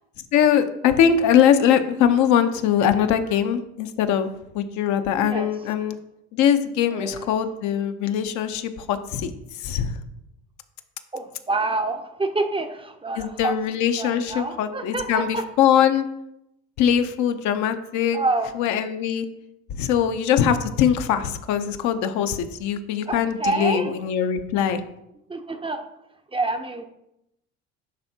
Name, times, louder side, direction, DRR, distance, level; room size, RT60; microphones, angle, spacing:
voice 1, 0.3-6.0 6.3-9.9 13.2-16.1 16.8-18.2 18.6-19.3 19.7-24.8, left 9 dB, 60° left, 8 dB, 0.6 m, -22 dB
voice 2, 6.8-7.3 11.1-13.6 14.0-15.5 18.1-18.6 23.1-24.0 25.3-25.9 26.3-26.8, right 2 dB, 15° right, 7 dB, 0.6 m, -27 dB
10.5 x 3.5 x 2.7 m, 0.83 s
hypercardioid pair, 75°, 33 cm